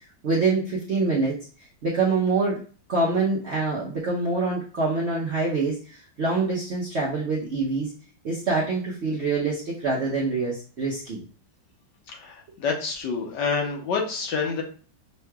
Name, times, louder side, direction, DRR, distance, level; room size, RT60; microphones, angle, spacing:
voice 1, 0.2-1.4 1.8-2.6 2.9-7.9 8.2-11.2, right 3 dB, 60° right, -4 dB, 0.7 m, -25 dB
voice 2, 12.1-14.6, left 5 dB, 70° left, 1 dB, 1.4 m, -28 dB
5.5 x 3.0 x 2.2 m, 0.41 s
omnidirectional pair, 2.1 m